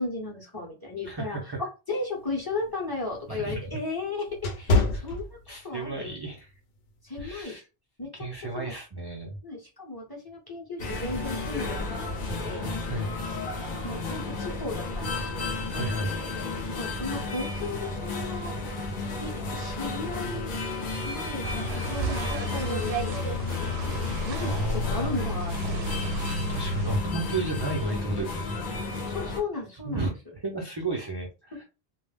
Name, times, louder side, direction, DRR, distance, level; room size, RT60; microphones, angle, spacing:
voice 1, 0.0-5.2 5.6-6.2 7.0-7.5 8.0-8.1 8.5-8.7 9.4-12.6 13.8-15.5 16.8-18.6 19.2-20.5 21.0-21.4 21.9-23.7 23.9-26.1 29.1-30.1, left 3 dB, 25° left, -3 dB, 0.6 m, -35 dB
voice 2, 1.0-1.6 3.3-3.7 4.9-5.1 5.5-6.5 7.2-7.6 8.1-9.4 12.8-13.2 15.7-16.2 24.3-25.2 25.6-25.7 26.5-28.6 29.8-31.6, right 2 dB, 40° right, -1 dB, 0.4 m, -33 dB
sound 1, 2.2-5.9 6.3-6.6 7.2-7.4, left 2 dB, 85° left, 0.8 m, -28 dB
sound 2, 10.8-29.4, left 3 dB, 55° left, 0.8 m, -33 dB
sound 3, 21.4-27.0, equal, 85° right, 0.8 m, -31 dB
2.2 x 2.0 x 3.3 m, 0.30 s
omnidirectional pair, 1.0 m